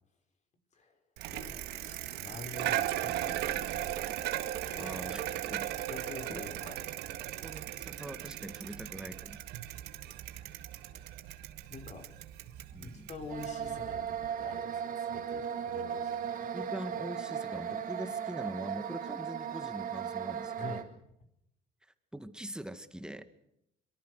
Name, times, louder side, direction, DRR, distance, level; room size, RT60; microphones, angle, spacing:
Bicycle, 1.2-14.3, right 13 dB, 85° right, 1.9 m, -37 dB
voice 1, 1.3-4.1 4.7-5.0 5.8-6.8 10.7-11.1 11.7-12.1 12.8-16.5 20.6-20.9, left 3 dB, 45° left, 5 dB, 5.5 m, -47 dB
voice 2, 4.8-5.2 5.5-5.9 6.3-6.4 7.4-9.4 12.7-13.1 16.2-20.8 22.1-23.2, right 1 dB, 5° right, 10 dB, 1.9 m, -43 dB
sound 1, 13.3-20.8, right 8 dB, 55° right, 3.4 m, -37 dB
24.0 x 23.5 x 6.5 m, 0.81 s
cardioid pair, 110°, 17 cm